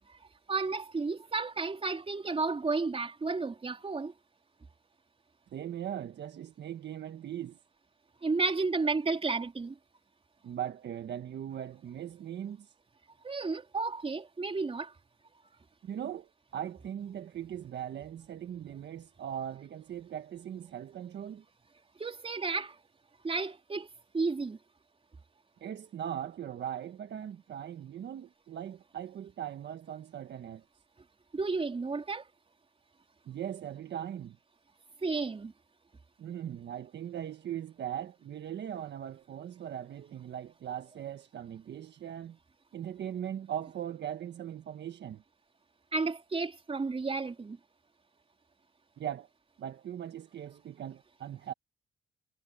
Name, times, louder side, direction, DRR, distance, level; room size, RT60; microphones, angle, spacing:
voice 1, 0.5-4.1 8.2-9.8 13.2-14.9 22.0-22.8 23.2-23.9 24.1-24.6 31.3-32.2 35.0-35.5 45.9-47.6, right 4 dB, 30° right, 3.8 m, -32 dB
voice 2, 5.5-7.6 10.4-12.7 15.8-21.4 25.6-30.6 33.3-34.4 36.2-42.4 42.7-45.2 49.0-49.3 49.6-51.5, right 10 dB, 60° right, 1.5 m, -39 dB
cardioid pair, 90°, 20 cm